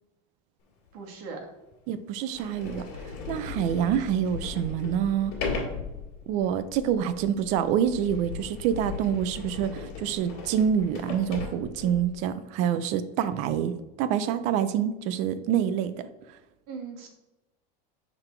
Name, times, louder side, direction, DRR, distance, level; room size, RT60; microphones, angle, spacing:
Sliding door, 0.9-1.0 1.7-1.8 2.3-12.2, left 4 dB, 45° left, 2.0 m, -37 dB
voice 1, 0.9-1.4 16.7-17.1, right 5 dB, 60° right, 1 dB, 1.5 m, -39 dB
voice 2, 1.9-2.8 3.3-5.3 6.3-13.7 14.0-16.1, right 9 dB, 35° right, 13 dB, 0.4 m, -26 dB
6.8 x 3.8 x 4.4 m, 1.0 s
supercardioid pair, 175°, 21 cm